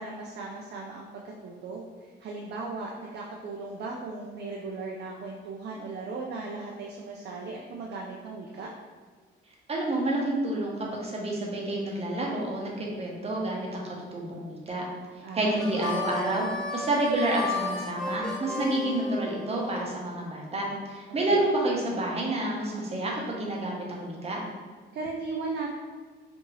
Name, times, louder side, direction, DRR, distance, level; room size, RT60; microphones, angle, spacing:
voice 1, 0.0-8.7 15.2-15.6 24.9-25.7, right 3 dB, 55° right, -1 dB, 0.4 m, -37 dB
voice 2, 9.7-13.8 14.1-14.8 15.3-24.4, right 1 dB, 30° right, -2 dB, 0.8 m, -29 dB
Harmonica, 15.6-19.8, left 2 dB, 5° left, 0.5 m, -33 dB
2.7 x 2.6 x 3.0 m, 1.4 s
cardioid pair, 90°, 20 cm